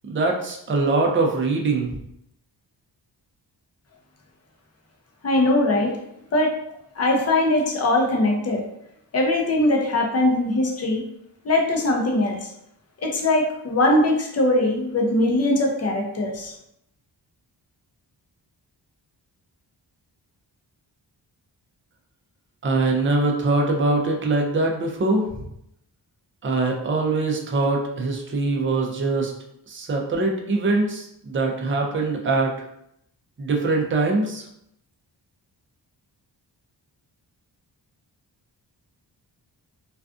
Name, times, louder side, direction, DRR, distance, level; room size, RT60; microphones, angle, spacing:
voice 1, 0.1-1.9 22.6-25.2 26.4-29.3 29.7-32.5 33.4-34.4, right 3 dB, 30° right, 1 dB, 0.4 m, -23 dB
voice 2, 5.2-6.0 6.3-6.6 7.0-8.6 9.1-11.0 11.4-12.5 13.0-16.5, left 1 dB, 35° left, 0 dB, 0.6 m, -21 dB
2.4 x 2.3 x 2.4 m, 0.76 s
wide cardioid pair, 100°, 44 cm